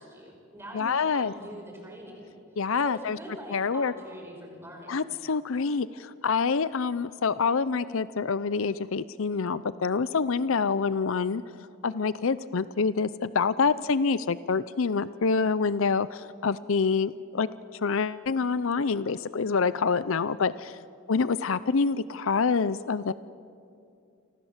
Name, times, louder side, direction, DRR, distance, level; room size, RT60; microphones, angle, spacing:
voice 1, 0.0-2.3 2.8-5.1, equal, 10° right, 1 dB, 5.7 m, -43 dB
voice 2, 0.7-1.3 2.6-3.2 3.5-3.9 4.9-11.4 11.8-17.5 17.8-20.8 21.1-23.1, left 5 dB, 70° left, 16 dB, 0.6 m, -26 dB
29.0 x 25.0 x 7.3 m, 2.6 s
head